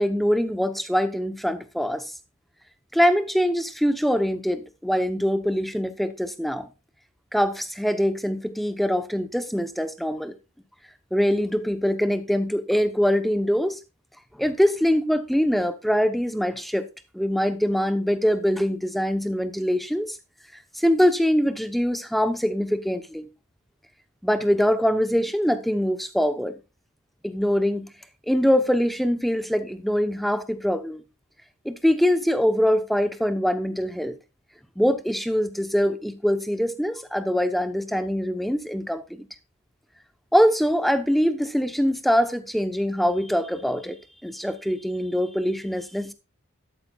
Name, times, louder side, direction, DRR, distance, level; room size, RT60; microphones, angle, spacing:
voice 1, 0.0-2.1 2.9-6.7 7.3-10.4 11.1-13.8 14.4-16.9 17.1-20.2 20.7-23.3 24.2-26.6 27.2-27.9 28.3-31.0 31.6-34.2 34.8-39.3 40.3-44.0 44.2-46.1, equal, ahead, 0.8 m, -23 dB
12.5 x 12.0 x 2.3 m
head